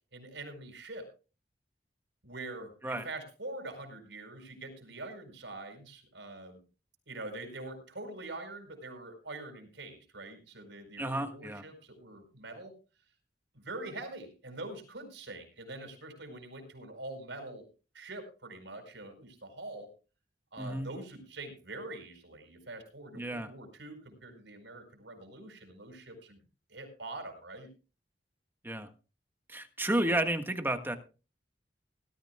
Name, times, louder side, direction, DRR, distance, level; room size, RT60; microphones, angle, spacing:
voice 1, 0.1-1.1 2.2-6.6 7.1-12.7 13.5-17.7 17.9-19.9 20.5-26.4 26.7-27.7 30.0-30.3, right 2 dB, 90° right, 7 dB, 4.9 m, -44 dB
voice 2, 11.0-11.6 20.6-20.9 23.1-23.5 28.6-28.9 29.5-31.0, right 1 dB, 10° right, 6 dB, 1.5 m, -32 dB
20.0 x 13.0 x 2.3 m, 0.33 s
head